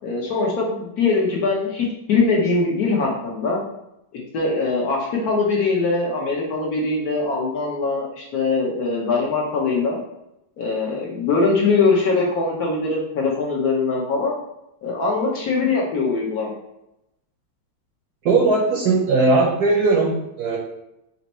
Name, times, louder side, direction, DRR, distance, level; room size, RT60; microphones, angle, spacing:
voice 1, 0.0-3.6 4.3-10.0 10.6-14.4 14.8-16.5, left 3 dB, 60° left, -3 dB, 1.2 m, -22 dB
voice 2, 18.2-20.6, right 3 dB, 65° right, 0 dB, 1.0 m, -18 dB
4.4 x 2.8 x 4.1 m, 0.85 s
omnidirectional pair, 2.2 m